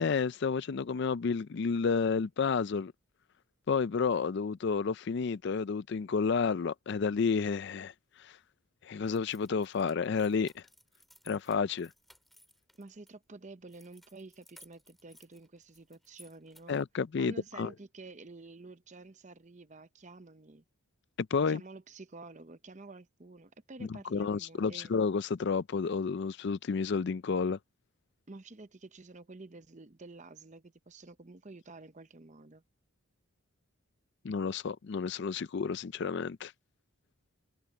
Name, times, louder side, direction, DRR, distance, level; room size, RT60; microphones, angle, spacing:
voice 1, 0.0-2.9 3.7-8.4 8.8-10.6 11.3-11.9 16.7-17.7 21.2-21.6 23.9-27.6 34.2-36.5, left 5 dB, 50° left, 0.4 m, -31 dB
sound 1, 9.0-13.1 13.7-16.9, equal, ahead, 3.9 m, -60 dB
voice 2, 12.8-16.8 17.2-20.6 21.5-24.9 28.3-32.6, right 3 dB, 35° right, 0.8 m, -50 dB
head